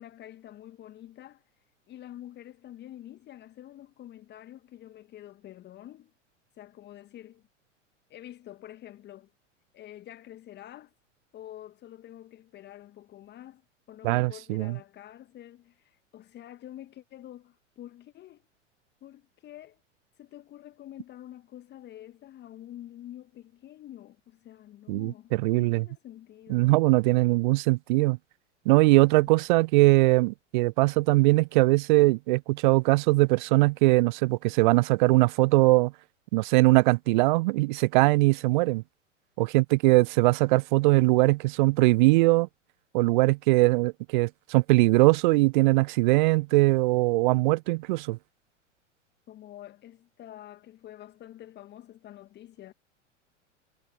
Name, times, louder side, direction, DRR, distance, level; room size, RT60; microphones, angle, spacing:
voice 1, 0.0-1.4 1.9-6.1 6.6-7.4 8.1-9.3 9.7-10.9 11.3-13.6 13.9-18.4 19.0-19.8 20.2-26.8 49.3-52.7, left 12 dB, 30° left, 1.4 m, -47 dB
voice 2, 14.0-14.8 24.9-25.9 26.5-28.2 28.7-35.9 36.3-38.8 39.4-42.5 42.9-48.2, right 22 dB, 40° right, 0.5 m, -21 dB
figure-of-eight pair, 95°, 37 cm